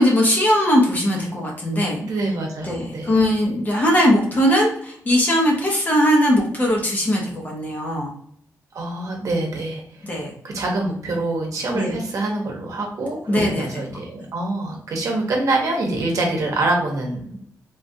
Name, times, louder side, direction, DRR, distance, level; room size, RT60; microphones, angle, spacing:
voice 1, 0.0-2.0 2.6-8.1 10.0-10.3 11.7-11.9 13.3-13.8, equal, 30° left, -2 dB, 0.9 m, -19 dB
voice 2, 2.0-3.1 8.7-10.1 10.4-17.4, right 2 dB, 65° right, 0 dB, 0.9 m, -25 dB
3.6 x 2.4 x 2.6 m, 0.65 s
wide cardioid pair, 170°, 6 cm